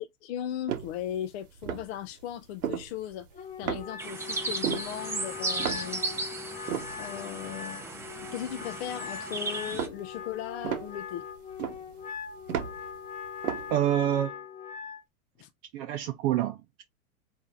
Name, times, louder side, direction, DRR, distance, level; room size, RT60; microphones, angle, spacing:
voice 1, 0.2-6.0 7.0-11.3 15.4-15.5, left 11 dB, 50° left, 0.5 m, -37 dB
sound 1, 0.7-1.3 1.5-2.0 2.5-3.4 3.6-4.1 4.4-6.3 6.6-9.2 9.6-13.0 13.2-13.8, right 9 dB, 90° right, 1.1 m, -35 dB
Wind instrument woodwind instrument, 3.3-15.0, left 7 dB, 15° left, 1.0 m, -41 dB
sound 2, 4.0-9.9, right 3 dB, 5° right, 0.6 m, -35 dB
voice 2, 13.7-14.4 15.7-16.8, right 12 dB, 45° right, 0.6 m, -27 dB
4.2 x 2.7 x 3.5 m
hypercardioid pair, 125°, 43 cm